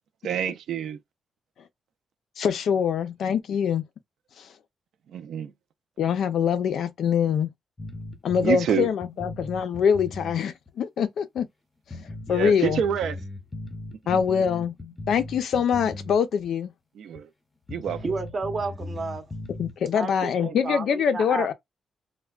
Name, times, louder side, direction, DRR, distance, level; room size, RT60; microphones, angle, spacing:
voice 1, 0.2-1.0 5.1-5.5 8.4-8.9 12.3-13.2 14.1-14.2 17.0-17.3 17.7-18.0, right 8 dB, 70° right, 0.4 m, -27 dB
voice 2, 2.4-3.8 4.4-4.5 6.0-7.5 8.2-11.5 12.3-12.8 14.1-14.7 15.1-16.7 19.6-21.5, left 7 dB, 65° left, 0.4 m, -24 dB
sound 1, 7.8-10.4 10.7-10.8 11.4-11.5 11.9-16.2 16.4-16.5 17.2-17.3 17.7-19.7, left 2 dB, 15° left, 0.5 m, -38 dB
voice 3, 18.0-19.3 20.0-21.5, right 4 dB, 30° right, 0.6 m, -31 dB
3.3 x 2.1 x 2.3 m
wide cardioid pair, 165°, 0 cm